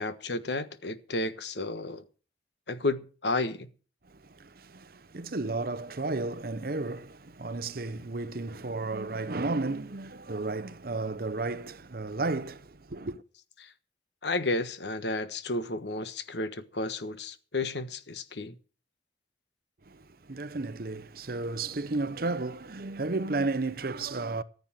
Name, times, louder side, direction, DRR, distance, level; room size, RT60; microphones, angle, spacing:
voice 1, 0.0-2.0 2.7-3.7 13.6-13.7 14.2-18.5, left 2 dB, 75° left, 1.3 m, -32 dB
voice 2, 4.0-13.2 19.9-24.4, right 3 dB, 55° right, 0.9 m, -33 dB
14.5 x 8.2 x 7.5 m
head